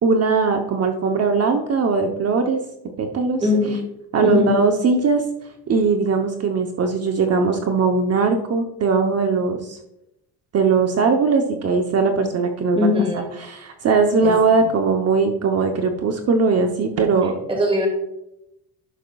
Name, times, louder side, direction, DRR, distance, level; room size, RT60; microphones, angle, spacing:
voice 1, 0.0-2.6 3.0-3.5 4.1-5.2 5.7-9.8 10.5-12.8 13.1-17.3, right 4 dB, 40° right, 4 dB, 0.8 m, -20 dB
voice 2, 3.4-3.8 4.2-4.5 12.7-13.3 14.2-14.7 17.5-17.9, left 2 dB, 15° right, 0 dB, 2.3 m, -21 dB
11.0 x 6.3 x 2.3 m, 0.81 s
cardioid pair, 130°, 40 cm